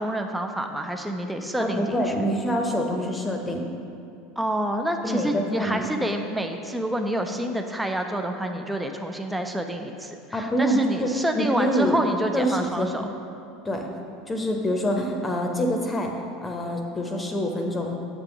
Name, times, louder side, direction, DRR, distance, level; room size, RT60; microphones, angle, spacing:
voice 1, 0.0-2.3 4.4-13.1, right 1 dB, 5° right, 4 dB, 0.4 m, -28 dB
voice 2, 1.6-3.6 5.0-5.9 10.3-12.0 12.3-13.1 13.6-13.9 14.3-16.1 16.4-17.9, equal, 15° left, 2 dB, 0.8 m, -26 dB
7.3 x 3.5 x 5.8 m, 2.5 s
figure-of-eight pair, 75°, 0 cm